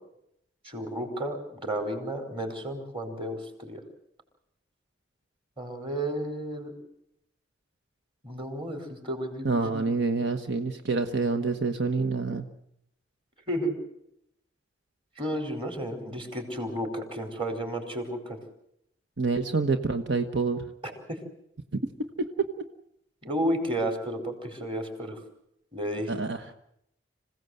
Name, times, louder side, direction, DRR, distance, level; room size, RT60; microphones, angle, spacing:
voice 1, 0.6-3.8 5.6-6.7 8.2-9.8 13.5-13.7 15.2-18.4 20.8-21.2 23.2-25.2 25.7-26.1, right 1 dB, 30° right, 5 dB, 4.7 m, -32 dB
voice 2, 9.4-12.4 19.2-20.6 21.7-21.8 26.1-26.5, right 3 dB, 75° right, 7 dB, 1.2 m, -27 dB
26.5 x 17.0 x 8.0 m, 0.77 s
head